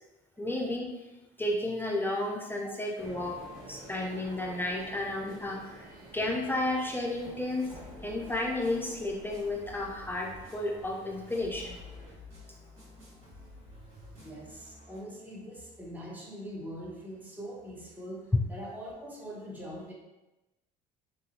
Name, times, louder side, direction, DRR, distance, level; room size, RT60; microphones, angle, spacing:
voice 1, 0.4-0.9 1.4-3.4 3.7-7.7 8.0-11.8, left 1 dB, 10° left, 0 dB, 0.4 m, -32 dB
sound 1, 3.0-12.1, right 1 dB, 50° right, 1.4 m, -50 dB
sound 2, 7.2-15.0, left 2 dB, 80° right, 1.5 m, -51 dB
voice 2, 14.1-19.9, equal, 10° right, -4 dB, 0.9 m, -43 dB
3.0 x 2.6 x 2.8 m, 1.0 s
supercardioid pair, 75°, 19 cm